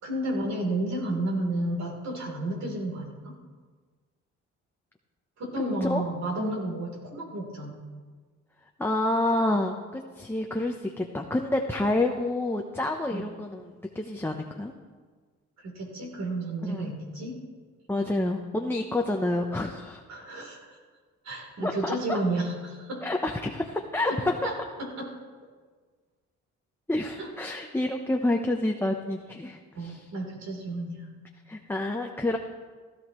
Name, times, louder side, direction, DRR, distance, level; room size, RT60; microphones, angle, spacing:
voice 1, 0.0-3.3 5.4-7.8 13.1-13.3 15.6-17.4 20.1-20.8 21.2-23.1 24.1-25.1 27.2-27.3 29.7-31.1, right 1 dB, 65° right, 0 dB, 3.7 m, -32 dB
voice 2, 8.8-14.7 16.7-16.9 17.9-20.0 21.6-22.2 23.0-24.3 26.9-30.0 31.5-32.4, left 2 dB, 5° left, 2 dB, 0.8 m, -28 dB
16.0 x 14.0 x 3.2 m, 1.5 s
cardioid pair, 90°, 30 cm